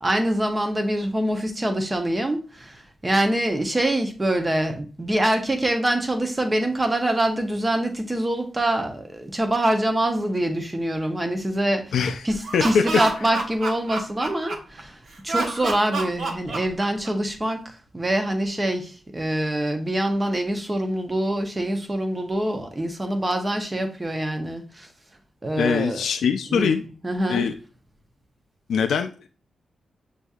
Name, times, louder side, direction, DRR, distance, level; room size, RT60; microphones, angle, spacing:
voice 1, 0.0-2.8 3.0-11.9 12.2-15.0 15.2-17.6 17.9-24.9 25.4-26.0 26.5-26.7 27.0-27.5, right 1 dB, 15° right, 0.7 m, -25 dB
voice 2, 11.9-12.3 12.5-12.8 25.6-26.8 27.3-27.5 28.7-29.3, left 6 dB, 85° left, 0.4 m, -22 dB
Laughter, 12.3-14.8 15.3-17.3, right 3 dB, 70° right, 1.1 m, -28 dB
7.9 x 2.7 x 2.4 m
wide cardioid pair, 160°, 0 cm